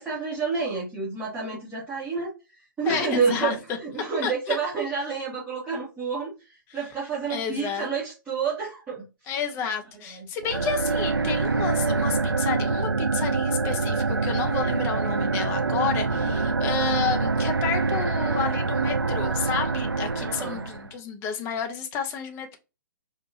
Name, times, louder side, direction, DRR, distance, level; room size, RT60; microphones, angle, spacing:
voice 1, 0.0-2.3 2.8-9.0 10.1-10.3 16.1-16.5 20.2-20.6, right 5 dB, 10° right, 1.7 m, -29 dB
voice 2, 2.9-3.6 4.2-4.6 7.3-7.9 9.3-22.6, left 7 dB, 20° left, 0.7 m, -31 dB
sound 1, 10.4-20.9, right 4 dB, 85° right, 0.5 m, -25 dB
4.7 x 2.5 x 2.6 m
figure-of-eight pair, 120°, 12 cm